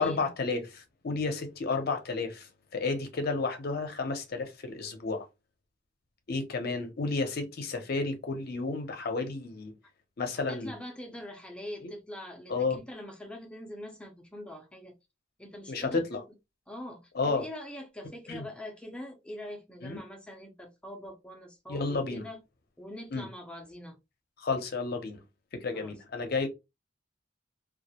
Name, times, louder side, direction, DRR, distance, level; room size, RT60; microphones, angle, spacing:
voice 1, 0.0-5.3 6.3-9.7 10.2-10.7 11.8-11.9 12.5-12.8 15.7-16.2 17.1-17.4 18.3-18.4 19.8-20.0 21.7-22.2 23.1-23.3 24.4-25.2 25.5-26.5, left 3 dB, 55° left, 0.6 m, -31 dB
voice 2, 10.5-15.0 15.4-16.0 16.7-22.4 22.8-24.0 25.7-25.9, left 1 dB, 5° left, 0.5 m, -43 dB
2.3 x 2.0 x 2.8 m
head